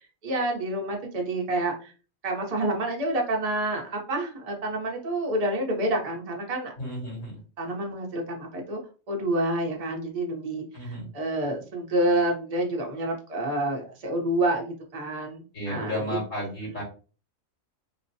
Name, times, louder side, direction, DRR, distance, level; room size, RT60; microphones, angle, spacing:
voice 1, 0.2-1.9 2.2-6.7 7.6-8.8 9.1-16.2, right 1 dB, 35° right, 1 dB, 0.7 m, -28 dB
voice 2, 6.8-7.4 10.7-11.1 15.5-16.8, equal, 70° left, -3 dB, 2.4 m, -33 dB
4.0 x 2.1 x 2.7 m, 0.36 s
omnidirectional pair, 1.4 m